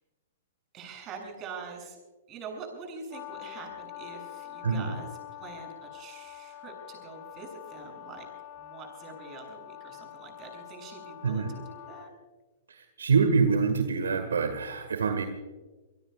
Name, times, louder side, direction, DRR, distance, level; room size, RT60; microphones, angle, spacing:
voice 1, 0.7-2.0 2.3-5.1 5.4-8.3 8.6-12.1, right 4 dB, 30° right, 2 dB, 7.5 m, -44 dB
Brass instrument, 3.1-12.1, left 13 dB, 35° left, 1.4 m, -45 dB
voice 2, 4.6-5.0 11.2-11.5 12.7-15.3, right 5 dB, 75° right, 7 dB, 1.7 m, -26 dB
26.0 x 22.5 x 2.4 m, 1.2 s
figure-of-eight pair, 115°, 0 cm